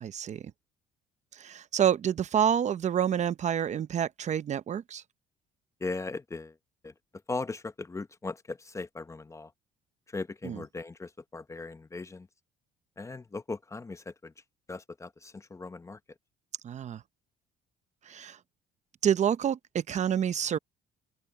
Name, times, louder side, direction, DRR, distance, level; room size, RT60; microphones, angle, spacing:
voice 1, 0.0-0.4 1.4-5.0 10.4-10.6 16.6-17.0 18.1-18.4 19.0-20.6, right 9 dB, 45° right, 0.8 m, -28 dB
voice 2, 5.8-6.5 6.8-6.9 7.3-9.5 10.1-12.3 13.0-14.3 14.7-16.0, left 3 dB, 15° left, 0.8 m, -38 dB
open air
cardioid pair, 110°, 17 cm